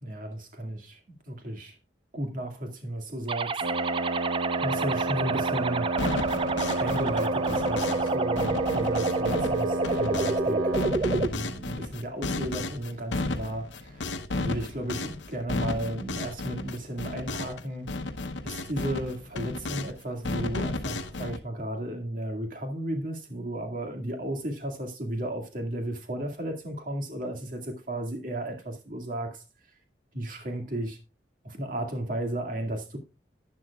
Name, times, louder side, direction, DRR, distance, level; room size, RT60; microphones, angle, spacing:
voice 1, 0.0-1.0 1.3-1.7 2.1-3.6 4.6-5.9 6.8-14.0 14.3-18.1 18.4-29.4 30.1-31.0 31.4-33.0, right 1 dB, 45° right, 2.1 m, -34 dB
sound 1, 3.3-11.3, right 3 dB, 30° right, 0.4 m, -29 dB
Wind instrument woodwind instrument, 3.6-11.0, right 2 dB, 80° right, 1.2 m, -31 dB
sound 2, 6.0-8.1 8.4-10.4 10.7-17.6 17.9-19.9 20.2-21.4, left 2 dB, 80° left, 0.9 m, -33 dB
11.5 x 9.7 x 2.4 m
head